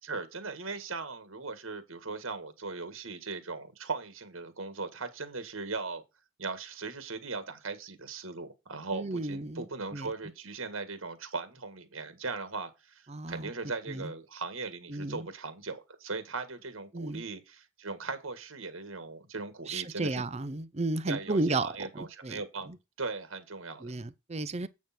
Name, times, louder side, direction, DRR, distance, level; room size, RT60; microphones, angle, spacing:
voice 1, 0.0-6.0 6.4-20.2 21.1-22.7 23.0-23.9, right 4 dB, 75° right, 1.7 m, -39 dB
voice 2, 8.9-9.7 9.9-10.1 13.1-13.5 13.9-14.1 14.9-15.3 16.9-17.2 19.7-22.4 22.7-22.8 23.8-24.7, right 2 dB, 30° right, 0.6 m, -33 dB
8.4 x 6.4 x 4.3 m
head